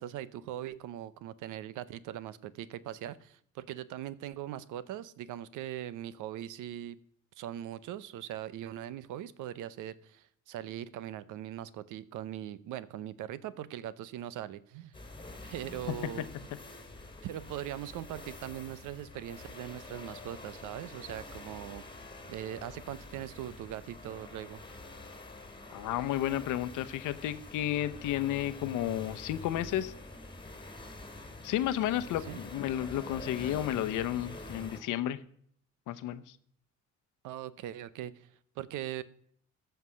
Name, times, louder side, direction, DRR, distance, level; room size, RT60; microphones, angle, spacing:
voice 1, 0.0-7.0 7.4-14.9 15.4-16.3 17.2-21.8 22.3-24.6 32.3-32.4 37.2-38.3 38.6-39.0, right 12 dB, 90° right, 18 dB, 0.7 m, -40 dB
sound 1, 14.9-34.8, left 2 dB, 15° left, 2.4 m, -46 dB
voice 2, 25.7-29.9 31.4-35.2 35.9-36.2, left 12 dB, 90° left, 11 dB, 0.8 m, -32 dB
14.0 x 5.8 x 6.2 m, 0.63 s
cardioid pair, 90°, 30 cm